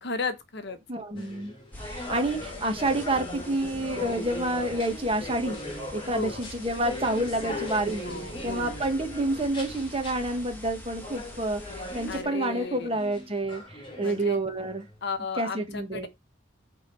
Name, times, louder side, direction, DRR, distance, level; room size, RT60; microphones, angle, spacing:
voice 1, 0.0-0.8 1.2-1.3 6.0-6.4 7.4-7.7 8.0-8.8 12.1-12.9 14.0-14.4 15.0-16.1, left 4 dB, 55° left, 1.1 m, -34 dB
voice 2, 0.9-1.5 1.8-5.6 5.9-8.0 8.4-14.8 15.4-16.1, right 1 dB, 25° right, 1.5 m, -29 dB
sound 1, 1.2-15.0, left 2 dB, 25° left, 2.6 m, -39 dB
sound 2, 1.7-12.2, left 1 dB, 10° left, 2.1 m, -44 dB
8.8 x 3.8 x 4.6 m
head